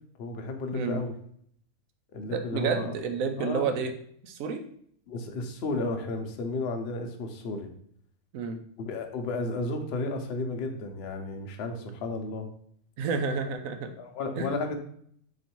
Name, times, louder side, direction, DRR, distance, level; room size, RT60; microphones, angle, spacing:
voice 1, 0.2-1.1 2.1-2.9 3.4-3.8 5.1-7.7 8.8-12.5 14.0-14.8, left 2 dB, 55° left, 5 dB, 0.8 m, -33 dB
voice 2, 2.3-3.9 4.2-4.6 8.3-8.6 13.0-13.9 14.4-14.5, right 5 dB, 75° right, 7 dB, 1.0 m, -30 dB
3.9 x 3.1 x 4.4 m, 0.64 s
omnidirectional pair, 1.5 m